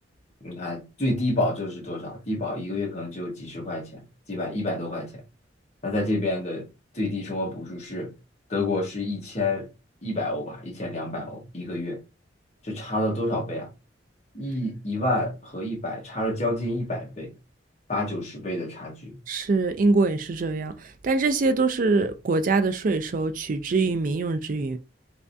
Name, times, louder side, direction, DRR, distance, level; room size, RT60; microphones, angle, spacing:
voice 1, 0.4-5.2 5.8-6.7 6.9-8.1 8.5-9.7 10.0-12.0 12.6-13.7 14.3-17.3 17.9-19.2, left 1 dB, 40° left, 1.2 m, -29 dB
voice 2, 19.3-24.8, right 3 dB, 45° right, 0.4 m, -24 dB
3.4 x 3.2 x 2.6 m
head